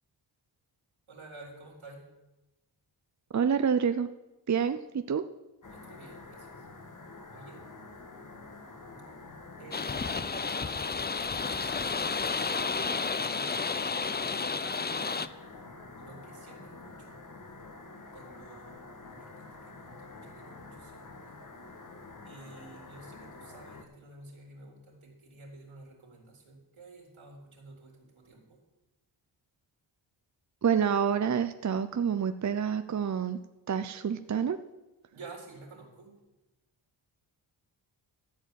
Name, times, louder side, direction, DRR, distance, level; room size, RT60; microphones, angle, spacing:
voice 1, 1.1-2.0 5.7-6.6 7.3-7.6 9.6-11.7 12.3-13.5 14.2-15.3 16.0-17.2 18.1-21.4 22.2-28.6 35.1-36.2, right 3 dB, 75° right, -1 dB, 4.0 m, -51 dB
voice 2, 3.3-4.1 4.5-5.2 30.6-33.4 33.7-34.6, right 7 dB, 35° right, 10 dB, 0.6 m, -28 dB
composite noise pattern, 5.6-23.8, left 3 dB, 40° left, 1.7 m, -48 dB
sound 1, 9.7-15.3, left 4 dB, 20° left, 0.6 m, -31 dB
14.0 x 5.0 x 8.2 m, 1.0 s
supercardioid pair, 40°, 49 cm